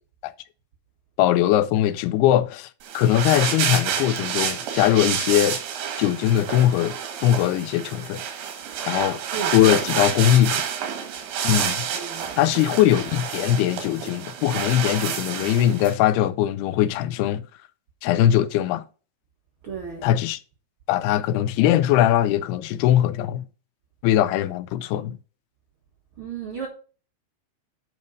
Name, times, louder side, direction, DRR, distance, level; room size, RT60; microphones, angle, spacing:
voice 1, 1.2-2.7 2.9-5.6 6.0-8.2 8.9-9.2 9.5-10.6 11.4-11.9 12.4-17.4 18.0-18.8 20.0-20.4 20.9-23.5 24.0-25.2, left 12 dB, 85° left, 2.6 m, -21 dB
sound 1, 2.8-15.9, right 8 dB, 75° right, 3.5 m, -29 dB
voice 2, 9.3-9.7 11.9-12.5 19.6-20.1 26.2-26.7, right 6 dB, 60° right, 1.4 m, -34 dB
9.4 x 5.3 x 5.2 m
omnidirectional pair, 4.6 m